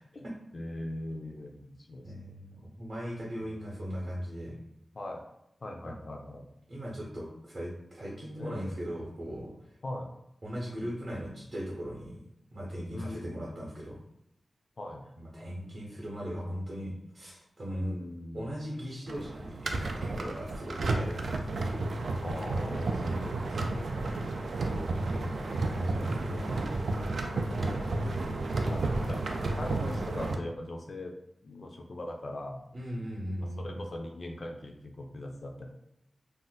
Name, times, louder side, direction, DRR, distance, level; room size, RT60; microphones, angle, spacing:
voice 1, 0.5-2.3 3.5-4.1 4.9-5.2 5.6-6.5 8.4-8.8 9.8-10.1 12.9-13.4 14.8-15.1 17.8-18.5 22.2-24.2 25.0-25.8 27.3-28.0 28.7-31.2 31.4-32.7 33.4-35.7, left 1 dB, 45° left, 1 dB, 0.3 m, -41 dB
voice 2, 2.0-4.6 5.8-5.9 6.7-9.5 10.4-12.2 12.5-14.0 15.2-18.0 18.3-21.2 24.9-26.6 32.7-33.8, equal, 40° right, -4 dB, 0.7 m, -38 dB
sound 1, 19.1-30.4, right 2 dB, 70° right, 0.3 m, -32 dB
2.5 x 2.1 x 3.9 m, 0.80 s
wide cardioid pair, 140°, 0 cm